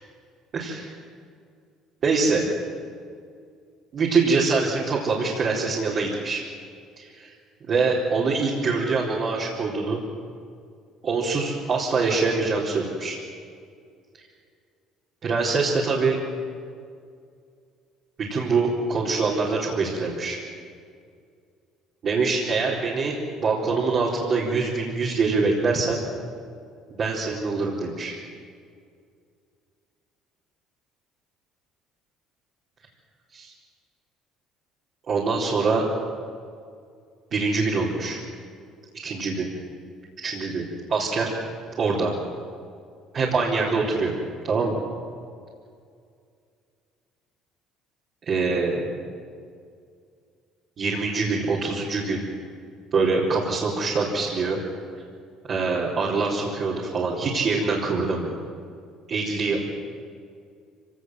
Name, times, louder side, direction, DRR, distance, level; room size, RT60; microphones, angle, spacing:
voice 1, 0.5-0.9 2.0-2.5 3.9-6.4 7.0-7.3 7.6-10.0 11.0-13.2 15.2-16.2 18.2-20.4 22.0-26.0 26.9-28.2 33.3-33.5 35.1-35.9 37.3-38.2 39.0-39.5 40.2-41.3 41.8-42.1 43.1-44.1 44.4-44.8 48.3-48.9 50.8-52.2 52.9-54.6 55.5-58.3 59.1-59.6, right 4 dB, 45° right, -5 dB, 4.1 m, -24 dB
25.0 x 18.0 x 7.7 m, 2.3 s
cardioid pair, 100°, 0 cm